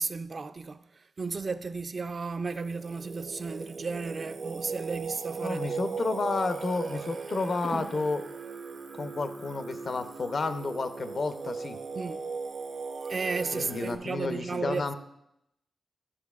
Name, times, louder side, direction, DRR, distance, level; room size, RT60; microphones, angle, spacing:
voice 1, 0.0-5.8 7.6-7.9 11.9-12.2 13.1-14.9, right 4 dB, 50° right, 0.4 m, -34 dB
Singing, 2.5-14.0, right 4 dB, 70° right, 0.8 m, -38 dB
voice 2, 5.4-8.2 9.0-11.8 13.5-14.9, left 3 dB, 60° left, 0.7 m, -31 dB
12.0 x 6.3 x 2.4 m
cardioid pair, 65°, 0 cm